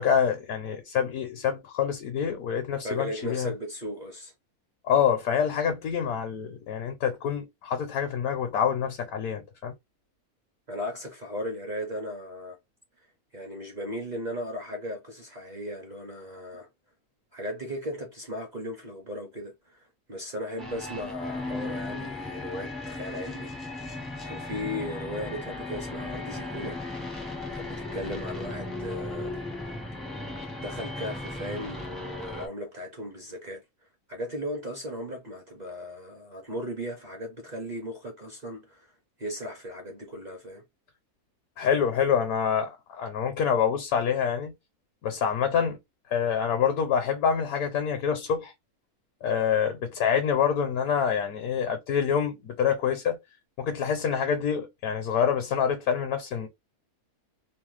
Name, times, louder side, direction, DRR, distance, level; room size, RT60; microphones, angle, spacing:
voice 1, 0.0-3.5 4.8-9.7 41.6-44.5 45.0-45.8 46.1-48.5 49.2-53.2 53.6-56.5, left 7 dB, 80° left, 1.1 m, -26 dB
voice 2, 2.8-4.3 10.7-12.6 13.3-16.7 17.3-23.5 24.2-26.8 27.5-29.4 30.6-38.9 39.2-40.6, equal, 45° right, 0.6 m, -37 dB
sound 1, 20.6-32.5, left 2 dB, ahead, 0.4 m, -36 dB
2.9 x 2.0 x 3.1 m
omnidirectional pair, 1.6 m